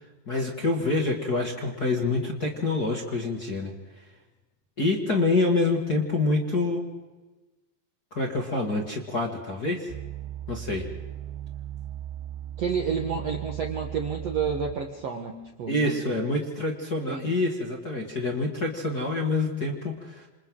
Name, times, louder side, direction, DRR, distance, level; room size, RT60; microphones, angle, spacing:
voice 1, 0.3-3.7 4.8-6.8 8.2-9.9 10.5-10.8 15.7-20.3, left 2 dB, 35° left, -1 dB, 1.8 m, -26 dB
sound 1, 9.9-15.0 15.6-15.7, right 11 dB, 85° right, 3.5 m, -37 dB
voice 2, 12.6-16.2 17.1-17.3, right 6 dB, 60° right, 2 dB, 1.7 m, -30 dB
29.0 x 27.5 x 3.9 m, 1.2 s
omnidirectional pair, 4.8 m